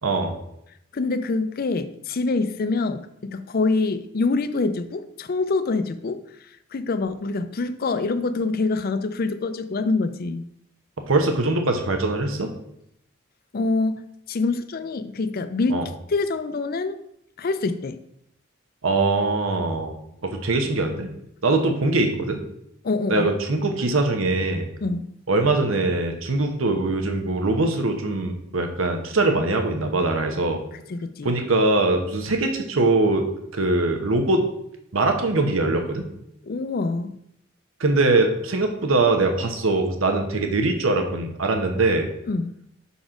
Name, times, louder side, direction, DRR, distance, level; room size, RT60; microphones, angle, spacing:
voice 1, 0.0-0.3 11.0-12.5 15.7-15.9 18.8-21.1 21.4-22.4 23.1-24.7 25.3-30.6 31.2-33.2 33.5-34.5 34.9-36.0 37.8-42.1, right 2 dB, 85° right, 4 dB, 1.0 m, -22 dB
voice 2, 0.9-6.2 6.7-10.4 13.5-14.0 14.3-15.8 16.1-17.0 17.4-18.0 22.8-23.3 24.8-25.1 30.9-31.3 36.5-37.1 42.3-42.6, left 3 dB, 45° left, 12 dB, 0.5 m, -25 dB
5.9 x 4.1 x 5.0 m, 0.76 s
head